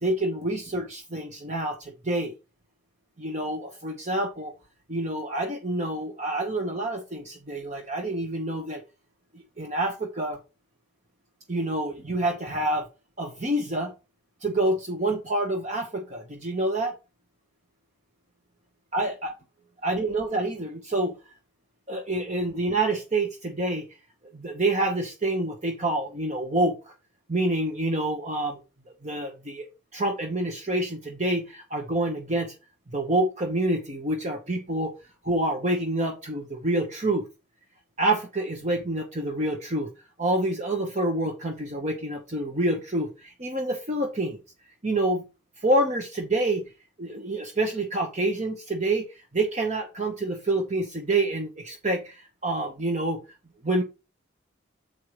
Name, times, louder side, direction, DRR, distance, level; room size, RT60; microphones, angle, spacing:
voice 1, 0.0-2.3 3.2-4.5 4.9-8.8 9.3-10.4 11.5-12.9 13.2-13.9 14.4-16.9 18.9-19.3 19.8-21.1 21.9-23.8 24.3-26.9 27.3-28.6 29.0-29.7 29.9-32.5 32.9-37.2 38.0-39.9 40.2-44.4 44.8-45.2 45.6-46.6 47.0-53.2 53.6-53.8, right 1 dB, 40° right, 3 dB, 1.0 m, -27 dB
7.6 x 4.6 x 4.8 m, 0.29 s
head